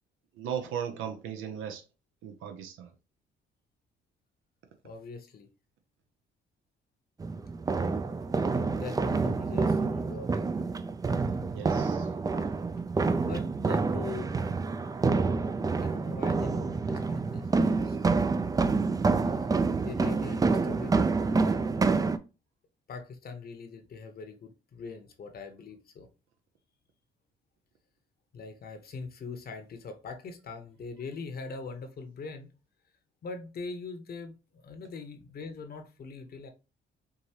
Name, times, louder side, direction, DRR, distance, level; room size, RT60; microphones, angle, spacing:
voice 1, 0.4-1.8 2.2-2.9 11.5-12.1, right 8 dB, 85° right, 0.6 m, -37 dB
voice 2, 4.8-5.5 8.8-10.5 13.2-14.4 15.8-18.0 19.3-21.7 22.9-26.1 28.3-32.5 33.2-36.5, left 4 dB, 50° left, 0.9 m, -42 dB
sound 1, 7.2-22.2, right 4 dB, 20° right, 0.3 m, -28 dB
4.7 x 2.7 x 2.8 m
cardioid pair, 90°, 20 cm